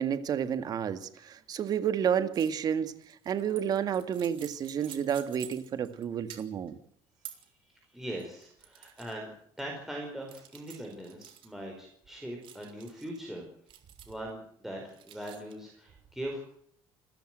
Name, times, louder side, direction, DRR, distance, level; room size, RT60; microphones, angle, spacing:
voice 1, 0.0-6.8, right 8 dB, 40° right, 1.9 m, -30 dB
sound 1, 2.3-2.6 3.0-6.0 6.3-6.7 7.2-7.5 8.0-9.1 9.6-9.7 10.3-11.5 12.4-13.2 13.7-14.3 14.9-15.5, right 11 dB, 60° right, 3.7 m, -49 dB
voice 2, 7.9-9.3 9.6-13.4 14.1-16.4, right 1 dB, 5° right, 5.0 m, -41 dB
28.5 x 14.0 x 7.8 m
cardioid pair, 145°, 10 cm